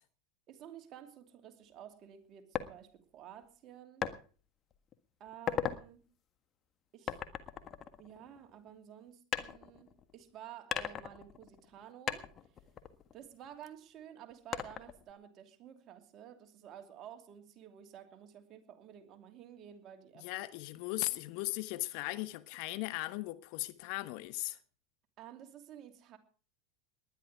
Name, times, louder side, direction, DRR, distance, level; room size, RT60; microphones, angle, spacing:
voice 1, 0.5-4.1 5.2-6.1 6.9-7.2 8.0-12.3 13.1-20.3 25.2-26.2, right 10 dB, 40° right, 2.8 m, -52 dB
sound 1, 2.5-2.7 4.0-4.2 4.7-4.9 5.3-5.8 7.1-8.6 9.3-10.2 10.7-11.8 12.1-13.7 14.5-15.1, left 9 dB, 35° left, 1.5 m, -38 dB
voice 2, 20.2-24.6, left 19 dB, 55° left, 1.2 m, -38 dB
19.5 x 11.5 x 4.8 m
figure-of-eight pair, 85°, 0 cm